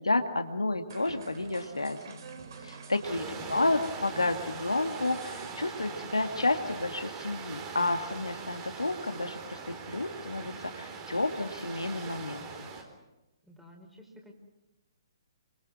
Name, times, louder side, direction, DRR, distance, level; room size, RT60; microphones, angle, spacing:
voice 1, 0.0-2.2 2.6-12.7, left 2 dB, 80° left, 6 dB, 2.1 m, -31 dB
sound 1, 0.9-6.6, right 5 dB, 45° right, 3.6 m, -48 dB
voice 2, 2.9-3.7 13.5-14.3, equal, 5° right, -1 dB, 4.9 m, -49 dB
sound 2, 3.0-12.8, right 5 dB, 25° right, 4.0 m, -42 dB
28.0 x 24.5 x 6.2 m, 1.0 s
figure-of-eight pair, 130°, 3 cm